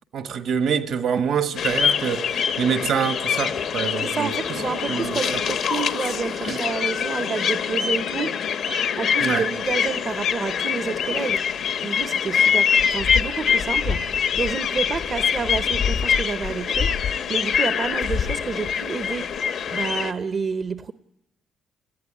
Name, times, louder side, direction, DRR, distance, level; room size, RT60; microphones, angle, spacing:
voice 1, 0.1-4.3 4.9-5.2 6.4-6.6 9.2-9.5, right 7 dB, 70° right, 1.4 m, -25 dB
sound 1, 1.6-20.1, left 7 dB, 75° left, 1.1 m, -24 dB
voice 2, 4.0-8.3 8.8-11.4 11.8-19.3 19.7-20.9, right 5 dB, 45° right, 0.7 m, -29 dB
19.0 x 14.5 x 9.8 m
cardioid pair, 90°, 0 cm